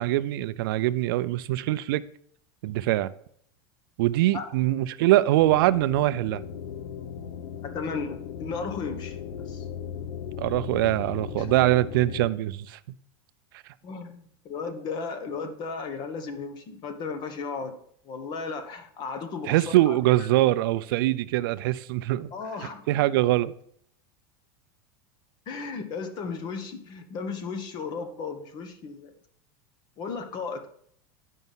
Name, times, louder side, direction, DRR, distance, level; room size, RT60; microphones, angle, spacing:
voice 1, 0.0-2.0 2.6-3.1 4.0-6.4 10.4-12.8 19.5-22.3 22.9-23.5, right 16 dB, 70° right, 0.5 m, -23 dB
sound 1, 5.4-12.3, left 8 dB, 80° left, 0.9 m, -37 dB
voice 2, 7.6-9.2 9.5-9.6 11.4-11.5 13.8-17.8 18.0-20.0 22.3-23.0 25.5-29.1 30.0-30.7, left 4 dB, 35° left, 1.2 m, -35 dB
9.3 x 5.4 x 5.5 m
supercardioid pair, 150°, 12 cm